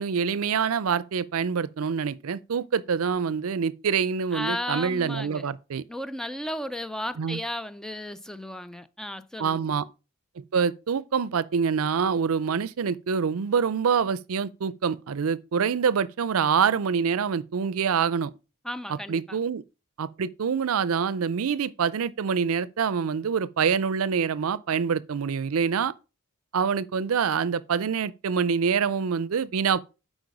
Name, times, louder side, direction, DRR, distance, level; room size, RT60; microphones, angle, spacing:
voice 1, 0.0-5.8 7.2-7.4 9.4-9.8 10.4-18.3 19.1-19.6 20.0-25.9 26.5-29.8, right 6 dB, 75° right, 0.5 m, -26 dB
voice 2, 4.3-5.5 5.9-9.7 18.6-19.4, left 1 dB, 5° left, 0.4 m, -34 dB
7.9 x 5.0 x 4.9 m
head